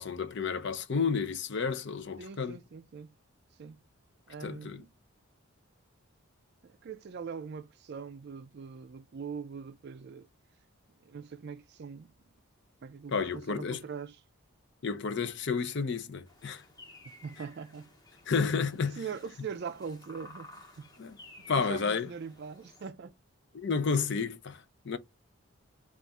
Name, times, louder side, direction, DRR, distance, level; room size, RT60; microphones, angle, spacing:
voice 1, 0.0-2.6 4.4-4.8 13.1-13.8 14.8-16.6 18.3-19.0 21.0-21.2 21.5-22.1 23.5-25.0, left 5 dB, 50° left, 0.5 m, -31 dB
voice 2, 2.2-3.1 3.6-3.8 4.3-4.9 6.6-10.3 11.0-12.1 12.8-14.2 17.2-17.9 18.3-20.9 21.4-23.2, right 6 dB, 50° right, 0.4 m, -42 dB
sound 1, 16.3-22.9, left 2 dB, 15° left, 0.8 m, -54 dB
4.0 x 2.4 x 3.5 m
head